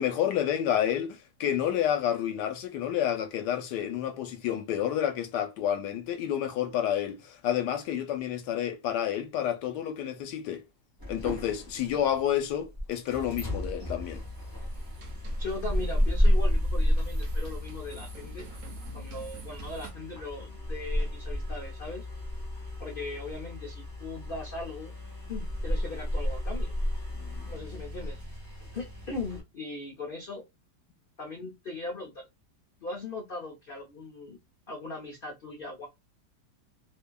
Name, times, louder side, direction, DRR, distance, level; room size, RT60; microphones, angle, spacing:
voice 1, 0.0-10.6 11.1-14.2 27.2-27.4, left 10 dB, 90° left, 1.2 m, -29 dB
sound 1, 11.0-29.4, equal, 20° right, 0.7 m, -32 dB
sound 2, 14.1-19.9, right 2 dB, 65° right, 1.0 m, -47 dB
voice 2, 15.2-18.5 18.9-22.1 22.8-24.9 25.3-26.7 27.4-28.2 28.7-30.4 31.2-32.3 32.8-34.4 34.7-35.9, left 3 dB, 55° left, 0.6 m, -39 dB
2.7 x 2.6 x 2.2 m
omnidirectional pair, 1.8 m